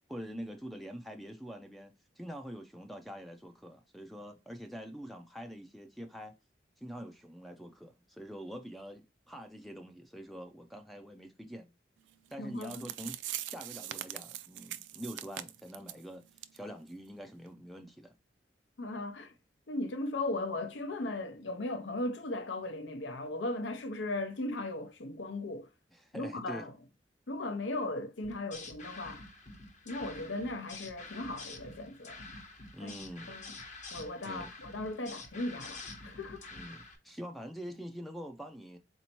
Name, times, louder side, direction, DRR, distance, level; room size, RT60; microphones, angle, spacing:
voice 1, 0.1-6.3 6.8-11.7 12.3-18.1 25.9-26.7 32.7-33.4 34.2-34.5 36.5-38.8, equal, ahead, 0.3 m, -45 dB
sound 1, 12.3-12.4 12.6-16.0 16.4-16.6 16.9-17.0 17.5-17.6, right 12 dB, 85° right, 0.4 m, -41 dB
voice 2, 12.4-12.9 18.8-19.3 19.7-25.7 26.1-26.7 27.3-29.2 29.9-32.3 32.8-32.9 33.3-33.6 33.9-36.5, left 2 dB, 80° left, 0.7 m, -37 dB
sound 2, 28.2-37.0, left 3 dB, 40° left, 1.0 m, -48 dB
4.2 x 2.7 x 2.9 m
head